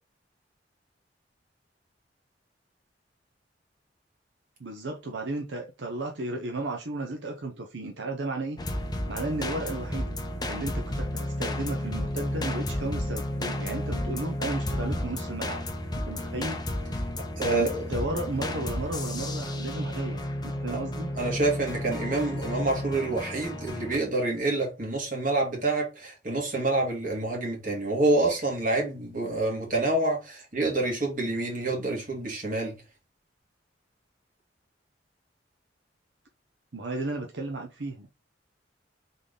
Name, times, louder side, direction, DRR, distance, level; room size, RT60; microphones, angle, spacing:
voice 1, 4.6-8.6 9.1-10.2 10.5-15.6 15.9-16.6 17.5-21.1 36.7-38.1, right 2 dB, 80° right, 0.8 m, -34 dB
Bird woman (loopable), 8.6-24.0, left 1 dB, 25° left, 0.8 m, -32 dB
voice 2, 17.4-17.8 20.7-20.8 21.2-32.7, right 2 dB, 50° right, 2.0 m, -27 dB
3.7 x 3.5 x 3.8 m
head